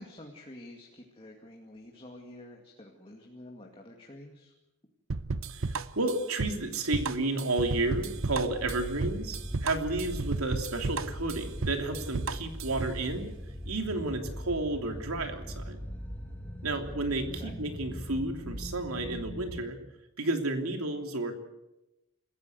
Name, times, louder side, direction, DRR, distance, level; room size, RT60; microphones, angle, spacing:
voice 1, 0.0-4.5 17.3-17.5, left 1 dB, 25° left, 0 dB, 2.3 m, -48 dB
sound 1, 5.1-13.0, right 3 dB, 65° right, 0.8 m, -34 dB
voice 2, 5.5-13.3 13.6-15.8 16.6-19.8 20.2-21.4, right 2 dB, 90° right, 5 dB, 3.1 m, -32 dB
sound 2, 7.8-19.6, equal, 10° left, 1.9 m, -40 dB
27.0 x 15.0 x 8.1 m, 0.94 s
head